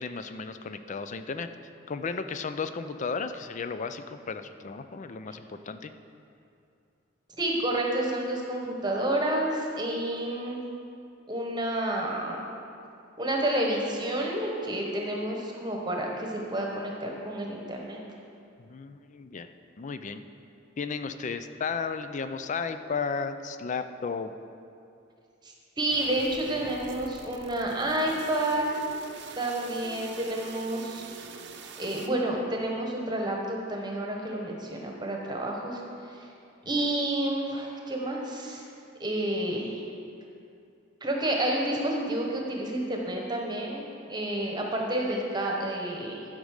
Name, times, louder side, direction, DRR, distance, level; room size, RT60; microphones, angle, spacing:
voice 1, 0.0-1.5 1.9-5.9 18.6-19.5 19.8-20.2 20.8-24.3, left 5 dB, 40° left, 10 dB, 0.4 m, -34 dB
voice 2, 7.4-10.6 11.3-12.4 13.2-18.0 25.4-28.8 29.4-31.4 31.8-36.3 36.7-38.6 39.0-39.8 41.0-43.8 44.1-46.3, right 1 dB, 20° right, 0 dB, 1.1 m, -30 dB
sound 1, 25.9-32.1, right 4 dB, 60° right, 0.7 m, -45 dB
11.5 x 5.2 x 6.5 m, 2.5 s
head